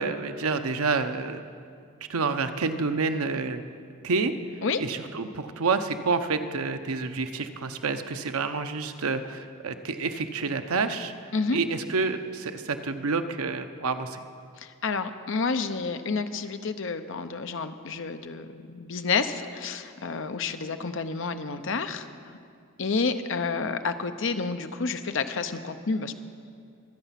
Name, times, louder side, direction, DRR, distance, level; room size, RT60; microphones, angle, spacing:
voice 1, 0.0-1.4 2.1-3.6 4.0-4.3 4.8-11.1 11.5-14.2, right 4 dB, 85° right, 8 dB, 0.8 m, -28 dB
voice 2, 14.6-22.0 22.8-26.1, left 4 dB, 60° left, 8 dB, 0.7 m, -29 dB
23.5 x 8.1 x 5.8 m, 2.3 s
head